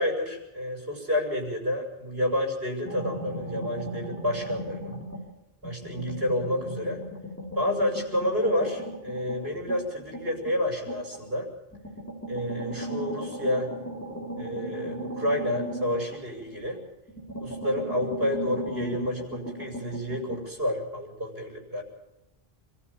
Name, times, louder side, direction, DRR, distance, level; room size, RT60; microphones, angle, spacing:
voice 1, 0.0-5.0 5.6-7.0 7.6-11.5 12.3-13.7 14.4-16.8 17.4-21.8, left 1 dB, 70° right, 1 dB, 6.8 m, -29 dB
sound 1, 2.8-5.3 5.6-11.2 11.7-16.7 17.1-20.4, equal, 15° left, 4.3 m, -37 dB
27.0 x 14.5 x 7.1 m, 0.95 s
omnidirectional pair, 1.0 m